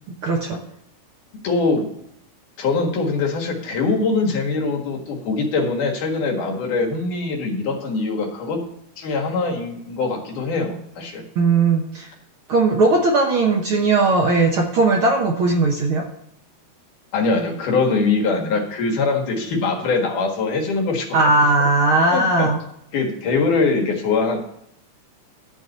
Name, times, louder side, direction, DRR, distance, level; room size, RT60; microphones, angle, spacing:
voice 1, 0.2-0.6 11.3-12.1 12.5-16.0 21.1-22.6, right 3 dB, 60° right, 1 dB, 1.4 m, -18 dB
voice 2, 1.4-1.9 2.6-8.6 9.0-11.2 17.1-21.1 22.1-22.5 22.9-24.4, left 4 dB, 85° left, 1 dB, 3.2 m, -22 dB
12.5 x 4.1 x 7.9 m, 0.75 s
omnidirectional pair, 3.5 m